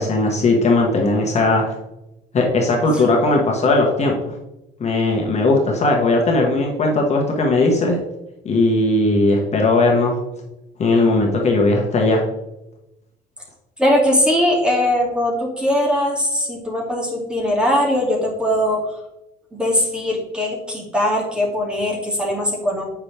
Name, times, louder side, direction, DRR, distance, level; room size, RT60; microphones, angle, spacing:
voice 1, 0.0-1.6 2.3-4.3 4.8-8.0 8.4-10.1 10.8-12.2, left 2 dB, 40° left, 0 dB, 1.4 m, -18 dB
voice 2, 13.8-18.8 19.5-22.8, left 1 dB, 5° right, -2 dB, 2.5 m, -20 dB
8.8 x 5.9 x 3.4 m, 0.92 s
cardioid pair, 110°, 17 cm